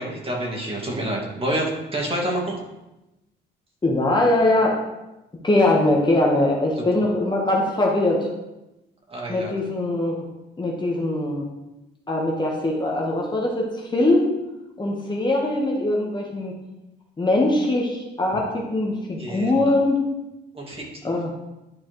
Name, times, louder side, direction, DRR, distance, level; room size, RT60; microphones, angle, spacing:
voice 1, 0.0-2.5 6.8-6.9 9.1-9.5 19.2-19.5 20.5-20.8, right 1 dB, 30° right, -2 dB, 2.1 m, -28 dB
voice 2, 3.8-4.8 5.4-8.3 9.3-10.3 10.6-11.4 12.1-14.4 14.8-16.5 17.2-20.0 21.0-21.3, left 2 dB, 20° left, -2 dB, 1.2 m, -21 dB
11.0 x 4.2 x 3.1 m, 0.97 s
cardioid pair, 90°, 20 cm